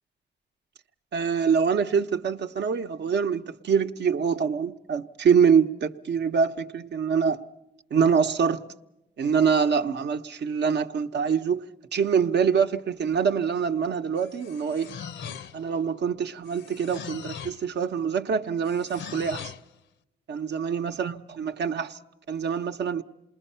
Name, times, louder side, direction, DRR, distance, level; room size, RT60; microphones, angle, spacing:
voice 1, 1.1-7.4 7.9-8.6 9.2-11.6 11.9-14.9 15.5-19.5 20.3-22.0 22.3-23.0, right 6 dB, 65° right, 0.8 m, -25 dB
sound 1, 14.2-15.8 16.4-17.7 18.6-19.7, left 7 dB, 80° left, 0.7 m, -40 dB
27.5 x 21.0 x 5.6 m
cardioid pair, 90°, 19 cm